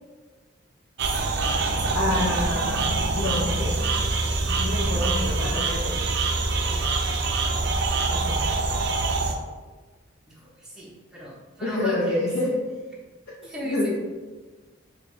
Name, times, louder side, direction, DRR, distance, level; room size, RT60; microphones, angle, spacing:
sound 1, 1.0-9.3, right 3 dB, 60° right, 0.4 m, -25 dB
voice 1, 1.9-3.8 4.5-6.0 8.1-8.4 11.6-12.6 13.6-13.9, left 1 dB, 65° left, -5 dB, 0.6 m, -27 dB
voice 2, 4.8-5.2 8.3-8.7 10.3-12.3 13.4-13.9, equal, 5° right, -7 dB, 0.7 m, -38 dB
4.3 x 2.2 x 3.2 m, 1.3 s
head